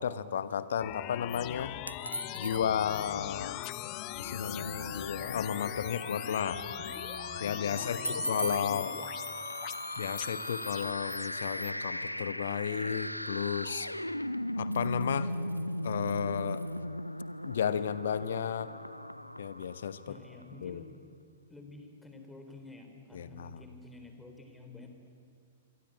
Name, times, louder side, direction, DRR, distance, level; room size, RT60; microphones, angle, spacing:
voice 1, 0.0-1.8 2.4-3.6 4.2-6.6 7.4-8.0 8.2-8.9 10.0-13.9 14.6-15.3 15.8-16.6 17.4-18.7 19.4-20.2 20.6-20.8 23.1-23.6, left 8 dB, 60° left, 14 dB, 1.2 m, -33 dB
sound 1, 0.8-11.7, left 16 dB, 35° left, 0.9 m, -41 dB
sound 2, 1.9-3.1 8.0-10.6 14.5-16.8, right 1 dB, 90° right, 0.6 m, -41 dB
sound 3, 4.1-20.4, left 1 dB, 90° left, 0.6 m, -38 dB
voice 2, 7.7-8.9 20.1-20.8 21.5-24.9, left 2 dB, 5° left, 4 dB, 3.9 m, -50 dB
27.0 x 24.0 x 8.7 m, 2.4 s
figure-of-eight pair, 105°, 0 cm